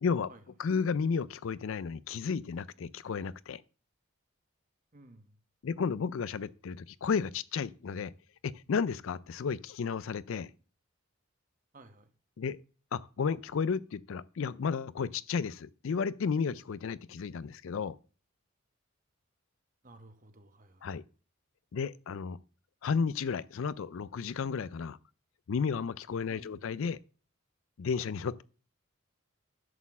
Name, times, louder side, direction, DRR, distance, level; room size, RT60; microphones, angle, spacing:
voice 1, 0.6-3.6 5.6-8.1 8.4-10.5 12.4-12.6 12.9-18.0 20.8-21.0 21.7-22.4 22.8-25.0 25.5-27.0 27.8-28.4, left 5 dB, 65° left, 0.4 m, -33 dB
voice 2, 4.9-5.4 11.7-12.1 19.8-20.9 26.3-26.7, right 2 dB, 40° right, 1.1 m, -55 dB
11.0 x 4.4 x 7.1 m
head